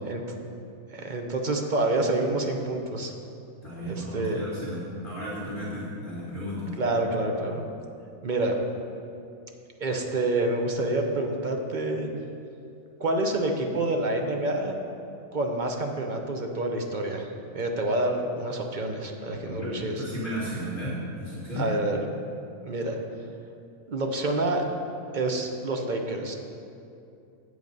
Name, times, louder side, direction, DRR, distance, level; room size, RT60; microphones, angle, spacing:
voice 1, 0.9-3.1 3.9-4.4 6.8-7.6 8.2-8.6 9.8-12.1 13.0-14.8 15.3-20.0 21.6-22.0 22.6-23.0 23.9-24.6 25.1-26.3, right 2 dB, 45° right, 3 dB, 0.8 m, -28 dB
voice 2, 3.6-6.8 19.5-19.7 20.0-21.7, equal, 40° left, -9 dB, 2.1 m, -34 dB
8.1 x 8.0 x 5.3 m, 2.6 s
omnidirectional pair, 1.4 m